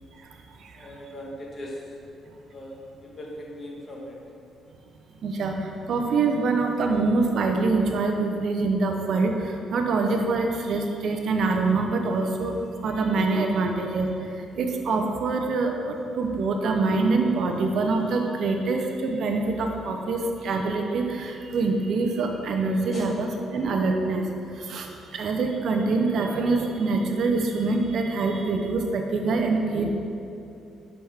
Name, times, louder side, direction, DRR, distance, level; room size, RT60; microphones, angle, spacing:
voice 1, 0.7-1.8 2.5-4.2 22.9-23.1, left 1 dB, 40° left, -1 dB, 1.3 m, -39 dB
voice 2, 5.2-12.6 12.8-24.3 24.5-29.9, right 3 dB, 65° right, 3 dB, 0.7 m, -25 dB
7.6 x 5.9 x 3.6 m, 2.7 s
cardioid pair, 90°, 0 cm